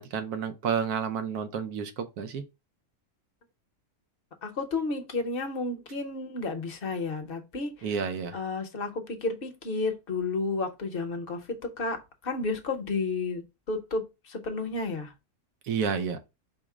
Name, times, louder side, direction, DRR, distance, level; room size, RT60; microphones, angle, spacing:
voice 1, 0.0-2.4 7.8-8.4 15.6-16.2, right 6 dB, 85° right, 1.2 m, -30 dB
voice 2, 4.4-7.9 8.3-15.1, left 3 dB, 45° left, 0.9 m, -32 dB
4.9 x 2.0 x 4.7 m
omnidirectional pair, 1.6 m